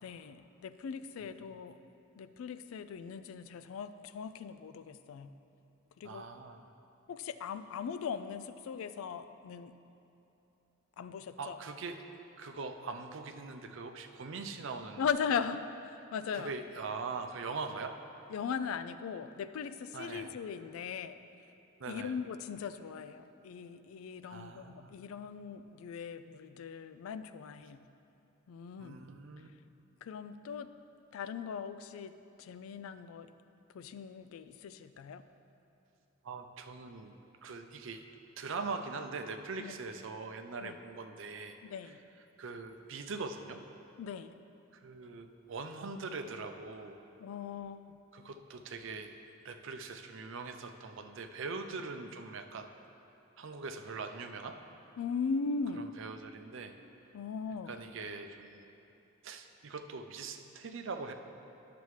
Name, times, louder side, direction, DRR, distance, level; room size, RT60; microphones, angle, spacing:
voice 1, 0.0-1.7 2.2-5.3 6.0-6.2 7.1-9.7 11.0-11.6 15.0-16.5 18.3-21.1 21.9-27.8 28.5-29.0 30.0-30.7 31.1-33.3 33.7-35.2 39.6-39.8 40.6-40.8 41.6-42.0 44.0-44.3 47.2-47.8 55.0-55.9 57.1-57.7, left 6 dB, 75° left, 12 dB, 0.3 m, -39 dB
voice 2, 1.2-1.6 6.0-6.7 11.4-12.0 12.4-15.0 16.3-17.9 19.9-20.3 21.8-22.2 24.2-25.0 28.8-29.5 36.2-37.1 37.4-38.0 38.4-41.6 42.4-43.6 44.7-47.0 48.1-49.2 49.4-52.7 53.4-54.6 55.8-56.7 57.7-58.6 59.2-61.1, right 4 dB, 60° right, 6 dB, 0.5 m, -42 dB
11.0 x 6.8 x 3.2 m, 2.9 s
head